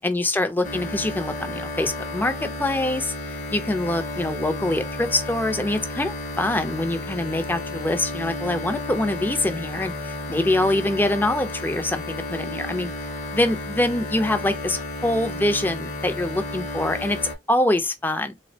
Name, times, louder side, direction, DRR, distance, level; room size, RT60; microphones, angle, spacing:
voice 1, 0.0-3.1 3.5-12.9 13.3-17.2 17.5-18.3, left 1 dB, 10° left, 0.4 m, -24 dB
sound 1, 0.6-17.3, left 1 dB, 45° left, 0.7 m, -32 dB
3.5 x 2.0 x 2.6 m
head